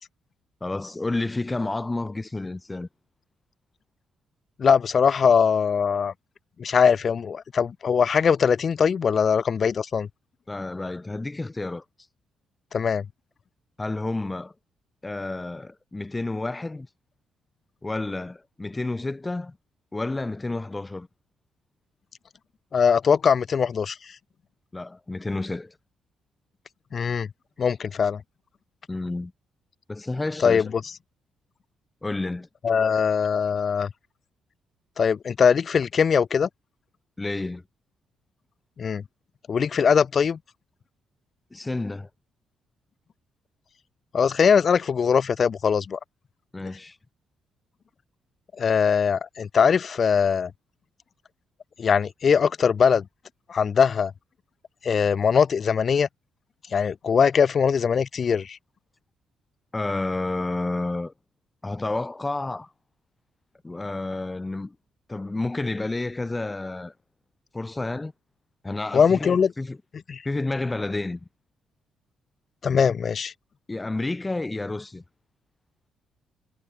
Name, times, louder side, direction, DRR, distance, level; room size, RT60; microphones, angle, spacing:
voice 1, 0.6-2.9 10.5-11.8 13.8-14.5 15.0-16.9 17.8-19.6 19.9-21.1 24.7-25.8 28.9-29.3 29.9-30.7 32.0-32.5 37.2-37.6 41.5-42.1 46.5-47.0 59.7-61.1 61.6-62.7 63.6-64.8 65.1-66.9 67.5-68.1 68.6-69.8 70.2-71.2 73.7-75.0, left 2 dB, 20° left, 4.1 m, -30 dB
voice 2, 4.6-6.1 6.6-10.1 12.7-13.0 22.7-24.0 26.9-27.3 27.6-28.2 30.4-30.7 32.6-33.9 35.0-36.5 38.8-39.0 39.5-40.4 44.1-46.0 48.6-50.5 51.8-53.0 53.5-54.1 54.8-56.1 56.7-58.6 68.9-69.5 70.1-70.2 72.6-73.3, left 6 dB, 45° left, 1.1 m, -21 dB
cardioid pair, 90°, 0 cm